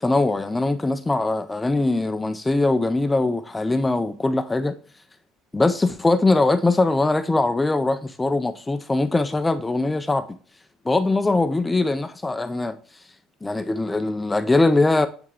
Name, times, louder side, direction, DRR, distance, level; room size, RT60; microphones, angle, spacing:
voice 1, 0.0-4.8 5.5-10.4 10.9-12.8 13.4-15.1, left 2 dB, 10° left, 0.3 m, -21 dB
8.4 x 3.4 x 3.5 m
cardioid pair, 160°, 0 cm